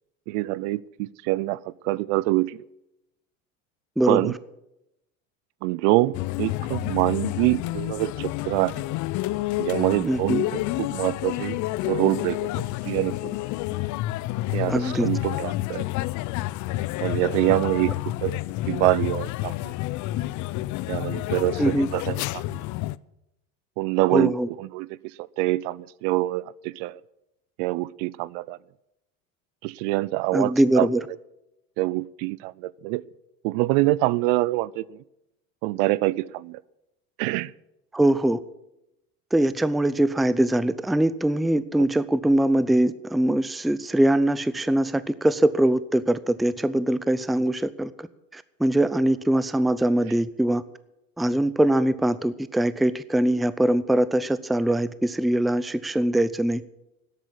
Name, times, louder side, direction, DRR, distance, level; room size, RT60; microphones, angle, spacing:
voice 1, 0.3-2.6 4.1-4.3 5.6-8.8 9.6-13.3 14.5-15.9 17.0-17.9 18.2-18.4 18.7-19.7 20.9-22.6 23.8-24.3 24.6-27.0 27.6-28.6 29.6-30.9 31.8-33.0 33.4-35.0 35.6-36.6 37.2-37.5, right 19 dB, 65° right, 22 dB, 0.6 m, -25 dB
voice 2, 4.0-4.3 10.1-10.4 14.7-15.1 21.6-21.9 24.1-24.5 30.3-31.0 37.9-38.4 39.3-48.1 48.3-50.6 51.2-56.6, right 1 dB, ahead, 16 dB, 0.4 m, -22 dB
sound 1, 6.1-23.0, left 17 dB, 50° left, 0.6 m, -29 dB
12.5 x 8.4 x 10.0 m, 0.88 s
supercardioid pair, 100°, 39 cm